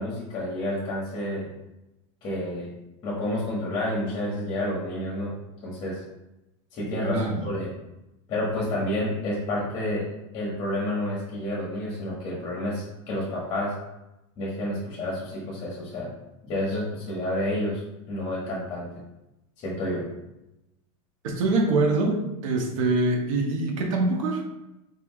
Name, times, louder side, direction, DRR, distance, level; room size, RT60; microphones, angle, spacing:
voice 1, 0.0-1.5 2.2-2.7 3.0-5.3 5.6-6.0 6.7-7.7 8.3-10.0 10.3-13.7 14.4-16.1 16.4-17.8 18.1-18.9 19.6-20.0, left 1 dB, 30° left, -5 dB, 1.4 m, -29 dB
voice 2, 7.0-7.4 21.2-24.4, right 2 dB, 80° right, 1 dB, 1.2 m, -24 dB
4.5 x 3.5 x 3.1 m, 0.93 s
supercardioid pair, 150°, 17 cm